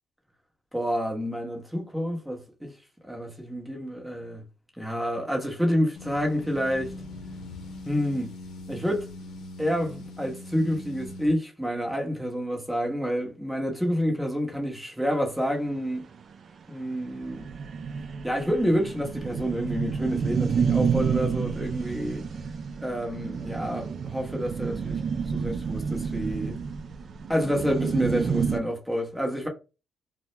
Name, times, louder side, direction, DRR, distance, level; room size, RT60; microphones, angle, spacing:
voice 1, 0.7-2.8 3.0-4.4 4.8-6.9 7.8-8.3 8.7-9.1 9.6-16.1 16.7-17.5 18.2-22.2 22.8-25.0 25.3-26.6 27.3-29.5, equal, 5° right, 0.9 m, -28 dB
sound 1, 6.0-11.3, left 2 dB, 75° left, 0.6 m, -41 dB
sound 2, 15.9-16.0 16.3-16.4 16.7-16.8 17.0-28.6, right 6 dB, 50° right, 0.3 m, -29 dB
2.2 x 2.1 x 2.9 m
cardioid pair, 90°, 0 cm